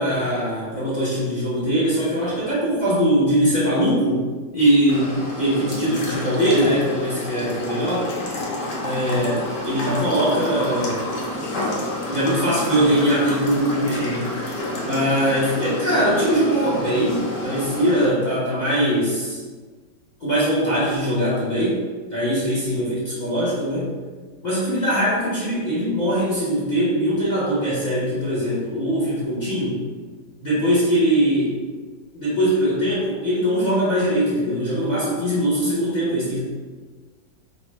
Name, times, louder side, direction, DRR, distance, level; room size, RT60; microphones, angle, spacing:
voice 1, 0.0-4.2 4.5-8.1 8.8-11.0 12.1-14.3 14.8-19.4 20.2-21.8 22.1-23.9 24.4-29.9 30.4-31.5 32.1-36.4, equal, 35° left, -9 dB, 0.7 m, -21 dB
sound 1, 4.9-18.1, left 1 dB, 75° left, 1.4 m, -29 dB
5.2 x 2.1 x 3.3 m, 1.4 s
omnidirectional pair, 2.0 m